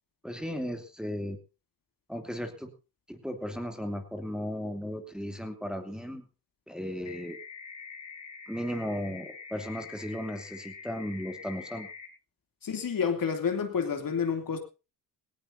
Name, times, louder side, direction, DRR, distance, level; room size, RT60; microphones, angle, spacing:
voice 1, 0.2-1.4 2.1-2.7 3.1-6.2 6.7-7.4 8.5-11.9, equal, ahead, 2.7 m, -35 dB
sound 1, 7.1-12.1, left 6 dB, 70° left, 4.2 m, -45 dB
voice 2, 12.6-14.6, left 6 dB, 45° left, 3.0 m, -29 dB
18.5 x 17.0 x 2.7 m
supercardioid pair, 65°, 45 cm